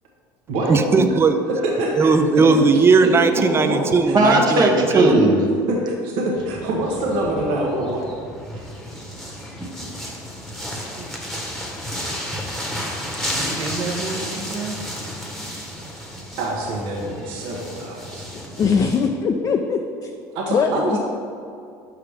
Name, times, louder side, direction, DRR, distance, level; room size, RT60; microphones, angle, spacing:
voice 1, 0.7-1.4 1.9-5.1, right 4 dB, 25° right, 0.5 m, -17 dB
voice 2, 1.8-2.1 2.5-2.6 3.0-3.9 5.7-8.1 11.0-11.1 16.4-18.2 20.3-21.0, right 1 dB, 70° right, 1.0 m, -25 dB
voice 3, 4.1-5.4 13.3-14.7, right 2 dB, 45° right, 0.9 m, -19 dB
sound 1, 6.4-19.1, equal, 5° left, 1.1 m, -32 dB
voice 4, 18.3-20.1 20.5-21.0, left 5 dB, 40° left, 0.4 m, -21 dB
5.8 x 4.8 x 3.4 m
supercardioid pair, 85°, 9 cm